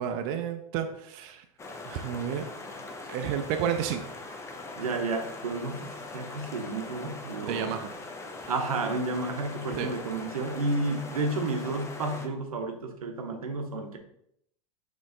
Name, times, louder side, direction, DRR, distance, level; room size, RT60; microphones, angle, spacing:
voice 1, 0.0-1.4 1.9-2.5 3.1-4.1 7.5-7.9 9.7-9.9, right 8 dB, 50° right, 6 dB, 0.5 m, -31 dB
sound 1, 1.6-12.3, left 2 dB, 15° left, 0.6 m, -41 dB
voice 2, 4.8-7.7 8.5-14.0, right 2 dB, 90° right, 4 dB, 0.8 m, -31 dB
4.1 x 3.1 x 3.7 m, 0.72 s
hypercardioid pair, 100°, 18 cm